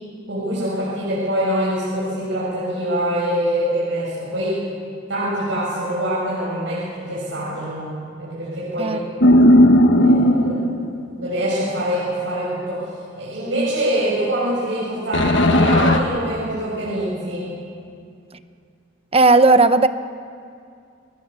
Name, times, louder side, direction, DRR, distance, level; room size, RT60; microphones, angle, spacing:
voice 1, 0.3-4.6 5.1-9.0 10.0-10.7 11.2-12.9 13.2-17.5, right 1 dB, 80° right, -8 dB, 7.2 m, -24 dB
sound 1, 9.2-11.0 15.1-16.0, left 1 dB, 70° left, 1.5 m, -14 dB
voice 2, 19.1-19.9, right 3 dB, 30° right, 11 dB, 0.8 m, -14 dB
29.0 x 21.0 x 6.9 m, 2.4 s
head